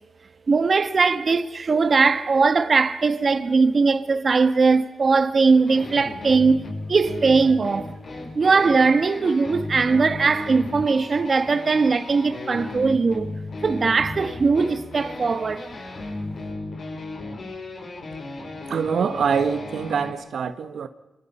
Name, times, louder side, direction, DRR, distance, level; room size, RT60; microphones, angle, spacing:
voice 1, 0.5-7.9 8.3-13.3 13.6-15.7, right 4 dB, 45° right, 1.3 m, -20 dB
sound 1, 5.7-20.1, left 2 dB, 55° left, 7.0 m, -35 dB
voice 2, 18.7-20.9, right 6 dB, 70° right, 1.3 m, -24 dB
26.5 x 26.0 x 5.5 m
cardioid pair, 90°, 0 cm